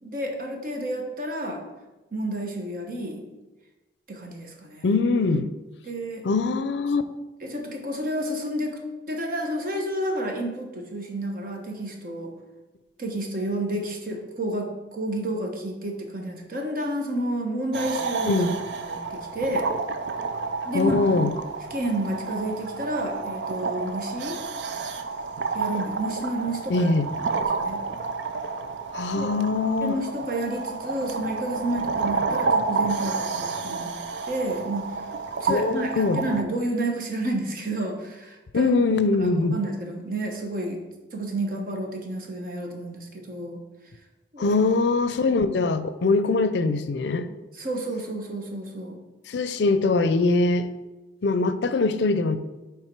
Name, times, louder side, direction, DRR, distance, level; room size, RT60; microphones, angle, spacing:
voice 1, 0.0-1.6 2.1-3.2 4.1-4.9 5.9-6.2 7.4-8.8 9.1-12.3 13.0-19.7 20.6-21.1 21.7-24.4 25.5-26.9 27.2-27.8 29.1-29.3 29.8-35.0 35.4-40.8 41.1-43.6 44.3-44.6 47.5-49.0, right 1 dB, 50° right, 2 dB, 1.1 m, -30 dB
voice 2, 4.8-5.5 6.2-7.0 18.3-18.6 20.7-21.3 26.7-27.1 28.9-30.0 35.4-36.2 38.5-39.6 44.4-47.3 49.3-50.7 51.2-52.4, left 3 dB, 70° left, 11 dB, 0.5 m, -22 dB
sound 1, 17.7-36.4, right 4 dB, 75° right, 0.5 m, -30 dB
9.3 x 3.5 x 4.5 m, 1.1 s
head